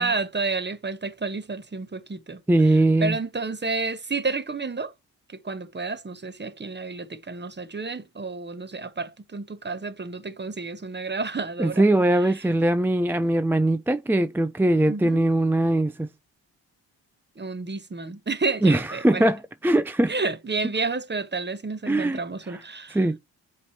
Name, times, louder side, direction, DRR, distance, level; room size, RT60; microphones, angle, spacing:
voice 1, 0.0-2.4 3.0-4.9 5.3-11.8 14.9-15.2 17.4-19.3 20.1-23.0, right 3 dB, 20° right, 1.1 m, -30 dB
voice 2, 2.5-3.2 11.6-16.1 18.6-20.1 21.9-22.2 22.5-22.6 22.9-23.2, right 1 dB, 5° right, 0.4 m, -21 dB
8.3 x 3.1 x 4.2 m
hypercardioid pair, 40°, 50 cm